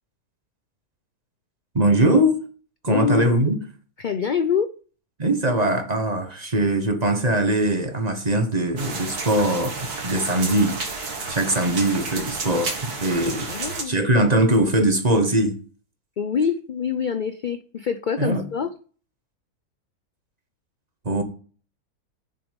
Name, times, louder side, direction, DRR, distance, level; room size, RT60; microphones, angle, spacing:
voice 1, 1.7-2.4 2.8-3.6 5.2-9.8 10.0-15.6 18.2-18.4 21.0-21.2, right 1 dB, 30° right, 1.4 m, -21 dB
voice 2, 2.9-3.3 4.0-4.7 13.5-13.9 16.2-18.7, left 6 dB, 65° left, 0.4 m, -25 dB
sound 1, 8.8-13.8, right 4 dB, 90° right, 2.3 m, -31 dB
7.5 x 6.9 x 5.3 m
omnidirectional pair, 1.6 m